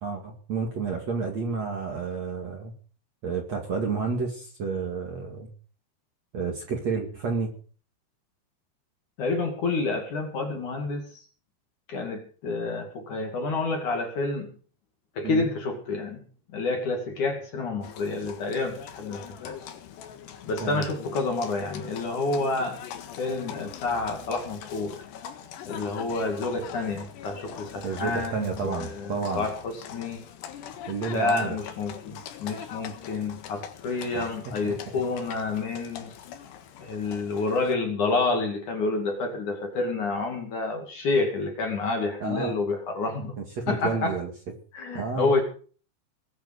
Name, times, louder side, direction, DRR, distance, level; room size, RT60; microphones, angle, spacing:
voice 1, 0.0-2.7 3.2-5.5 6.3-7.5 15.2-15.5 20.6-20.9 27.8-29.5 30.9-31.6 34.1-34.3 34.6-34.7 42.2-42.5 43.4-44.3 44.9-45.3, right 4 dB, 45° right, 3 dB, 2.7 m, -30 dB
voice 2, 9.2-11.2 11.9-14.5 15.1-16.2 16.5-19.6 20.4-22.8 23.2-25.0 25.6-30.2 31.1-36.1 36.8-43.3 43.7-44.1 44.7-45.4, left 3 dB, 45° left, 4 dB, 3.3 m, -29 dB
Livestock farm animals working animals, 17.8-37.7, left 9 dB, 70° left, 3.5 m, -42 dB
21.5 x 8.5 x 6.6 m, 0.42 s
omnidirectional pair, 5.5 m